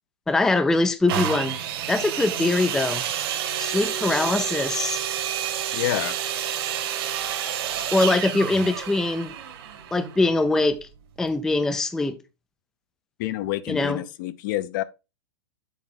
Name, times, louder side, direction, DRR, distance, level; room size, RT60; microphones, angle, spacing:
voice 1, 0.3-1.6 1.9-3.0 3.6-5.0 7.9-9.3 9.9-10.9 11.2-12.1 13.7-14.0, left 2 dB, 5° left, 0.4 m, -22 dB
sound 1, 1.1-10.8 11.5-11.6, right 10 dB, 55° right, 1.7 m, -29 dB
voice 2, 5.7-6.2 13.2-14.8, left 15 dB, 50° left, 0.6 m, -28 dB
7.2 x 4.8 x 3.9 m
supercardioid pair, 155°, 14 cm